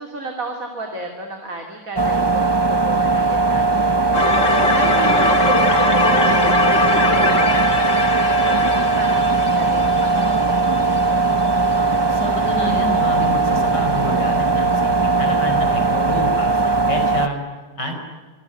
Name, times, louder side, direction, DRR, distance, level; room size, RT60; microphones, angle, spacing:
voice 1, 0.0-7.8 8.1-10.8, right 2 dB, 50° right, 3 dB, 3.4 m, -33 dB
sound 1, 2.0-17.3, right 3 dB, 25° right, 0.6 m, -19 dB
sound 2, 4.1-11.0, left 2 dB, 45° left, 2.6 m, -21 dB
voice 2, 12.1-17.4 17.8-17.9, left 1 dB, 75° left, 5 dB, 5.4 m, -28 dB
28.0 x 21.0 x 10.0 m, 1.4 s
omnidirectional pair, 1.8 m